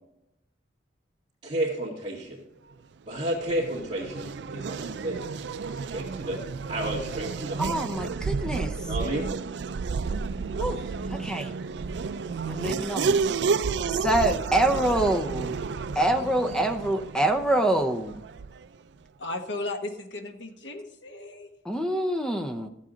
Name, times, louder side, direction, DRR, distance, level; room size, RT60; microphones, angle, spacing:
voice 1, 1.4-2.4 3.1-6.4 6.7-7.6 8.9-9.3, right 1 dB, 30° right, -8 dB, 2.2 m, -32 dB
Race car auto racing / Accelerating revving vroom, 3.1-18.7, right 5 dB, 65° right, 0.4 m, -31 dB
voice 2, 7.6-8.7 10.6-10.8 11.1-11.5 12.4-13.2 14.0-15.6 16.0-18.2 21.6-22.7, right 1 dB, 5° left, 6 dB, 0.6 m, -26 dB
voice 3, 19.2-21.5, left 2 dB, 75° left, 5 dB, 1.4 m, -35 dB
14.0 x 7.5 x 3.9 m, 0.87 s
head